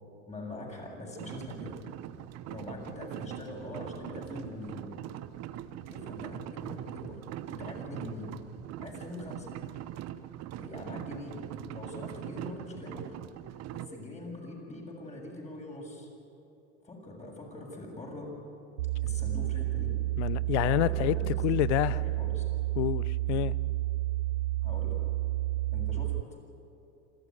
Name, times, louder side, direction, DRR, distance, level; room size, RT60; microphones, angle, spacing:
voice 1, 0.3-1.7 2.5-4.9 5.9-7.2 7.5-8.3 8.8-9.5 10.6-11.4 11.7-13.1 13.7-16.1 16.8-18.3 19.0-19.9 20.6-21.4 21.8-22.4 24.6-25.0 25.7-26.1, left 2 dB, 20° left, 0 dB, 7.3 m, -42 dB
sound 1, 1.2-13.9, right 12 dB, 45° right, 1.0 m, -42 dB
sound 2, 18.8-26.2, right 17 dB, 80° right, 0.5 m, -30 dB
voice 2, 20.2-21.2 21.4-22.0 22.8-23.5, left 17 dB, 65° left, 19 dB, 0.8 m, -28 dB
27.5 x 13.5 x 9.9 m, 2.8 s
hypercardioid pair, 85°, 38 cm